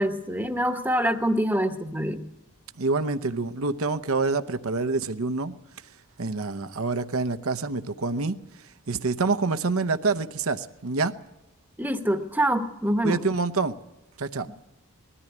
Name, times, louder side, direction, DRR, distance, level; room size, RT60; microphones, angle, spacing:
voice 1, 0.0-2.3 11.8-13.2, equal, 10° right, 1.0 m, -25 dB
voice 2, 2.8-5.5 6.2-8.4 8.9-11.1 13.0-13.8 14.2-14.5, right 3 dB, 75° right, 0.8 m, -26 dB
21.0 x 14.0 x 9.7 m
head